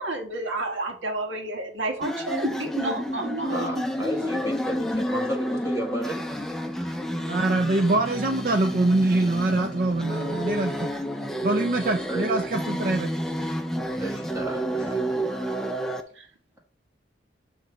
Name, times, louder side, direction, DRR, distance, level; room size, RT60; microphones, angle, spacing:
voice 1, 0.0-3.8 7.1-7.4 16.2-16.3, right 2 dB, 80° right, 2 dB, 1.7 m, -31 dB
sound 1, 2.0-16.0, equal, ahead, 0.5 m, -30 dB
voice 2, 3.5-6.2 12.1-12.3 13.7-15.0, right 1 dB, 15° right, -1 dB, 1.3 m, -33 dB
voice 3, 7.3-10.9 11.4-13.2, right 2 dB, 45° right, 5 dB, 0.5 m, -24 dB
7.9 x 3.2 x 5.2 m, 0.43 s
head